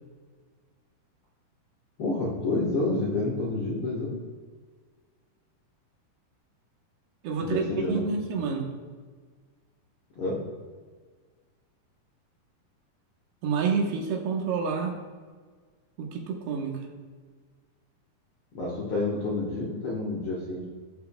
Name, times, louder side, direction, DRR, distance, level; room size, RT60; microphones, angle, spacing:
voice 1, 2.0-4.2 7.3-8.0 10.1-10.4 18.5-20.6, left 2 dB, 80° left, -4 dB, 1.2 m, -29 dB
voice 2, 7.2-8.7 13.4-15.0 16.0-16.7, right 5 dB, 90° right, 1 dB, 3.2 m, -28 dB
16.5 x 5.6 x 2.2 m, 1.5 s
omnidirectional pair, 4.5 m